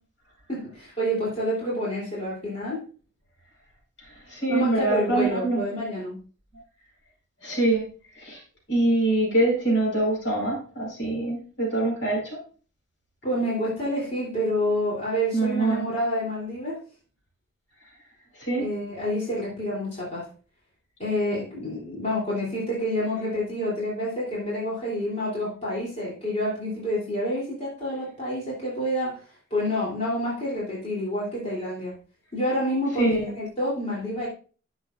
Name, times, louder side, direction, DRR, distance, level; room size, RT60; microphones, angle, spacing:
voice 1, 0.5-2.8 4.5-6.1 13.2-16.8 18.5-20.3 21.0-29.2 29.5-31.9 32.3-34.3, equal, 30° left, -6 dB, 3.3 m, -28 dB
voice 2, 4.3-5.6 7.4-7.8 8.2-8.4 8.7-12.4 15.3-15.9 18.4-18.7 33.0-33.3, right 2 dB, 75° left, -2 dB, 5.0 m, -24 dB
10.5 x 7.3 x 2.6 m, 0.38 s
head